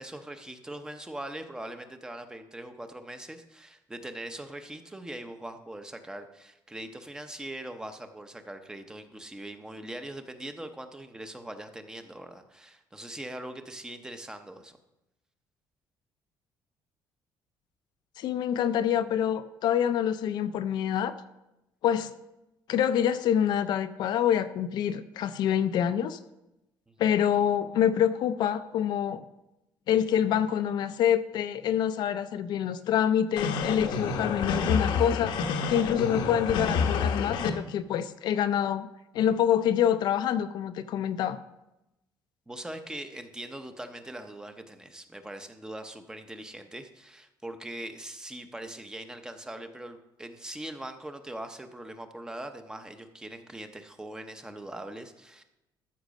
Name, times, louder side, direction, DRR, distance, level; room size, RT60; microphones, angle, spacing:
voice 1, 0.0-14.8 26.9-27.0 42.5-55.4, right 1 dB, 10° right, 7 dB, 0.7 m, -41 dB
voice 2, 18.2-21.1 21.8-22.1 22.7-26.2 27.0-29.2 29.9-35.4 35.7-38.9 39.1-41.4, left 9 dB, 60° left, 11 dB, 0.5 m, -26 dB
sound 1, 33.4-37.5, left 5 dB, 80° left, 1.1 m, -28 dB
13.0 x 6.4 x 5.2 m, 0.93 s
cardioid pair, 155°, 8 cm